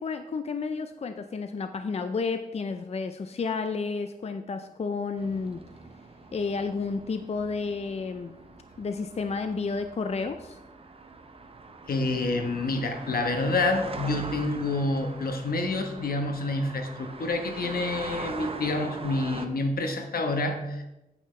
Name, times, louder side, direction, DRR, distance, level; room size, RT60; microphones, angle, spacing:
voice 1, 0.0-5.6 6.3-8.4 8.8-10.6, left 4 dB, 45° left, 8 dB, 0.5 m, -31 dB
sound 1, 5.2-19.5, right 3 dB, 40° right, 0.9 m, -42 dB
voice 2, 11.9-20.8, left 2 dB, 80° left, 5 dB, 1.2 m, -28 dB
8.8 x 8.6 x 3.3 m, 0.98 s
wide cardioid pair, 85°, 15 cm